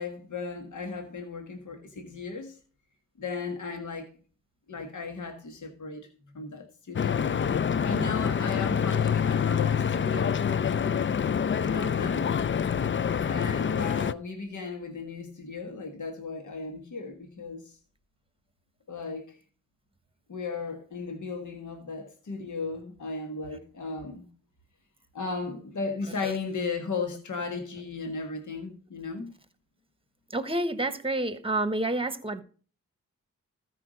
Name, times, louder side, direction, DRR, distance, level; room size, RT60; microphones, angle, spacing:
voice 1, 0.0-2.6 3.2-4.1 4.7-6.1 6.3-7.3 7.8-10.4 11.6-12.3 13.2-17.8 18.9-19.4 20.3-24.3 25.1-29.3, left 4 dB, 60° left, 1.5 m, -36 dB
Stream / Boat Water vehicle, 6.9-14.1, left 7 dB, 35° left, 0.4 m, -26 dB
voice 2, 30.3-32.4, right 2 dB, 15° right, 1.2 m, -29 dB
13.5 x 4.8 x 5.1 m
cardioid pair, 40°, 33 cm